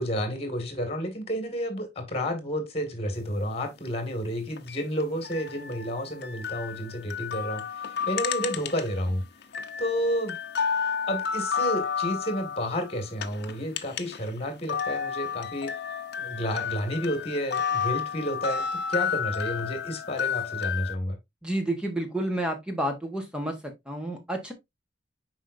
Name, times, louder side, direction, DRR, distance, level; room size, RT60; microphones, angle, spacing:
voice 1, 0.0-9.2 9.8-10.4 11.1-15.7 16.2-21.2, equal, 35° left, 2.0 m, -31 dB
sound 1, 4.6-9.1 9.4-14.3 14.6-20.9, left 7 dB, 60° left, 0.7 m, -31 dB
voice 2, 21.4-24.5, right 1 dB, 5° right, 1.2 m, -30 dB
7.3 x 5.0 x 2.6 m
head